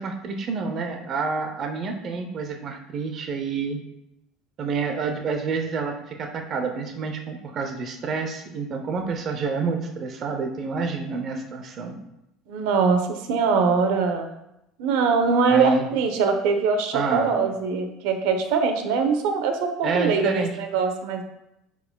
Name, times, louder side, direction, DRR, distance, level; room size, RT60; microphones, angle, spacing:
voice 1, 0.0-3.8 4.6-12.0 15.5-15.9 16.9-17.3 19.8-20.5, right 4 dB, 30° right, 4 dB, 0.6 m, -28 dB
voice 2, 12.5-14.3 14.8-21.2, right 5 dB, 75° right, 6 dB, 0.8 m, -22 dB
9.9 x 4.6 x 2.2 m, 0.86 s
cardioid pair, 175°, 0 cm